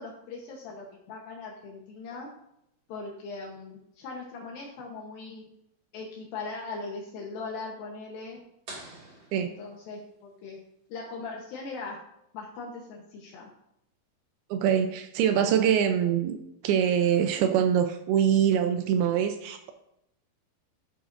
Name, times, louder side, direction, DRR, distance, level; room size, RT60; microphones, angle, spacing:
voice 1, 0.0-2.3 2.9-5.5 5.9-8.4 9.4-10.6 10.9-12.0 12.3-13.5, left 3 dB, 75° left, -1 dB, 2.7 m, -40 dB
sound 1, 8.7-10.3, right 1 dB, 35° right, 2.6 m, -47 dB
voice 2, 14.5-16.4 16.6-19.7, right 9 dB, 85° right, 7 dB, 2.6 m, -24 dB
12.5 x 7.9 x 2.6 m, 0.80 s
omnidirectional pair, 4.4 m